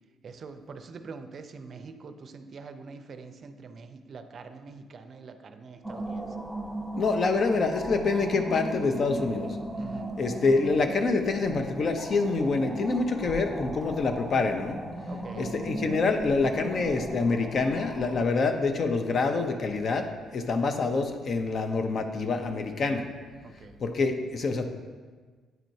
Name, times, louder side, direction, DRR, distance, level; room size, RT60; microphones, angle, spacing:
voice 1, 0.2-6.4 9.8-10.1 15.1-15.5 23.4-23.8, right 4 dB, 50° right, 8 dB, 0.4 m, -44 dB
sound 1, 5.8-18.2, right 1 dB, 5° right, 1.0 m, -37 dB
voice 2, 7.0-9.6 10.2-14.8 15.4-20.1 20.3-23.1 23.8-24.7, left 3 dB, 50° left, 6 dB, 0.6 m, -26 dB
9.1 x 4.3 x 2.7 m, 1.5 s
cardioid pair, 90°, 0 cm